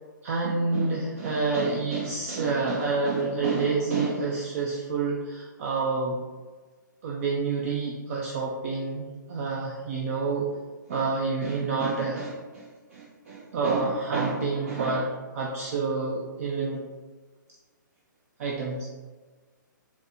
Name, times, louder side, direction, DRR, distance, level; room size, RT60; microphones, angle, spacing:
voice 1, 0.2-6.2 7.0-9.0 9.3-10.5 10.9-16.8 18.4-18.9, right 4 dB, 45° right, -2 dB, 0.4 m, -28 dB
4.0 x 2.3 x 2.6 m, 1.4 s
hypercardioid pair, 150°, 11 cm